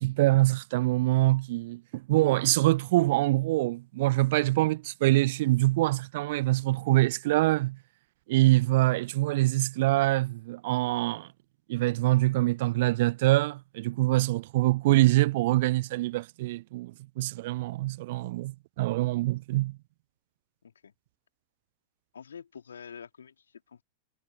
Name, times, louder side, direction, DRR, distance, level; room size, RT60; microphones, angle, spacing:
voice 1, 0.0-7.8 8.3-11.3 11.7-19.8, right 18 dB, 50° right, 0.4 m, -25 dB
voice 2, 20.6-20.9 22.1-23.8, left 7 dB, 70° left, 3.2 m, -47 dB
figure-of-eight pair, 90°, 0 cm